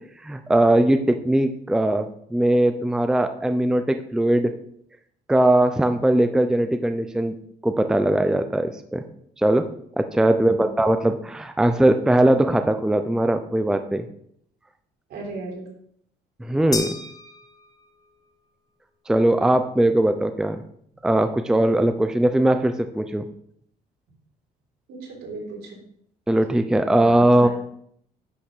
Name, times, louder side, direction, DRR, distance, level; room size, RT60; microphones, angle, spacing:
voice 1, 0.2-4.5 5.3-7.3 7.6-9.0 9.4-9.7 10.0-14.1 16.4-16.9 19.1-20.6 21.0-23.2 26.3-27.5, right 1 dB, 5° right, 8 dB, 0.5 m, -20 dB
voice 2, 10.3-10.8 15.1-15.6 24.9-25.8 27.0-27.1 27.4-27.5, right 3 dB, 70° right, -2 dB, 3.8 m, -36 dB
sound 1, 16.7-18.2, left 3 dB, 20° left, 1.1 m, -33 dB
10.0 x 3.5 x 6.5 m, 0.68 s
cardioid pair, 110°, 17 cm